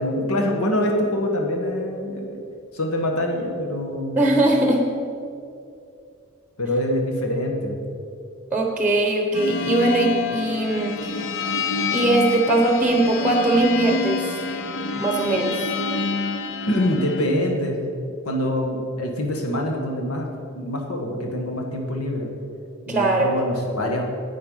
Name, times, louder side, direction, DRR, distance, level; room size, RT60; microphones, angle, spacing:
voice 1, 0.0-2.4 2.7-4.2 6.6-7.9 16.7-17.9 18.2-22.3 22.9-24.0, left 1 dB, 90° left, 2 dB, 1.7 m, -25 dB
voice 2, 4.2-4.9 8.5-11.2 11.9-14.2 14.9-15.6 22.9-23.3, right 2 dB, 5° right, 2 dB, 0.9 m, -20 dB
sound 1, 9.3-17.3, left 4 dB, 60° left, 0.7 m, -27 dB
9.8 x 8.6 x 5.6 m, 2.6 s
head